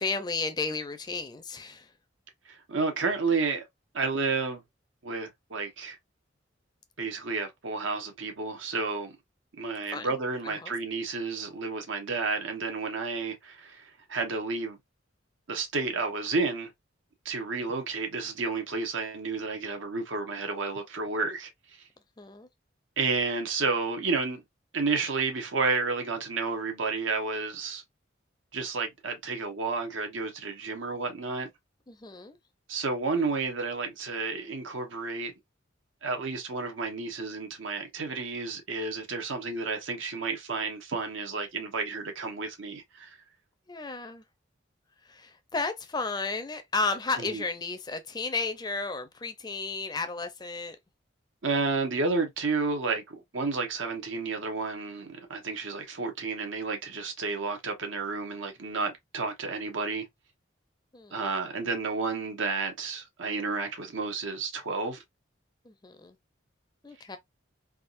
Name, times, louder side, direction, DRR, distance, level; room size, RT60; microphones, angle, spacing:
voice 1, 0.0-1.9 9.9-10.1 10.4-10.7 22.2-22.5 31.9-32.4 43.7-44.2 45.0-50.8 60.9-61.2 65.6-66.2 66.8-67.2, left 3 dB, 20° left, 0.4 m, -33 dB
voice 2, 2.5-3.7 3.9-4.6 5.0-6.0 7.0-9.2 9.6-14.8 15.5-16.7 17.2-21.5 23.0-24.4 24.7-27.8 28.5-31.5 32.7-35.3 36.0-43.2 47.2-47.4 51.4-60.1 61.1-65.0, right 4 dB, 85° right, 1.0 m, -31 dB
3.5 x 2.4 x 2.5 m
head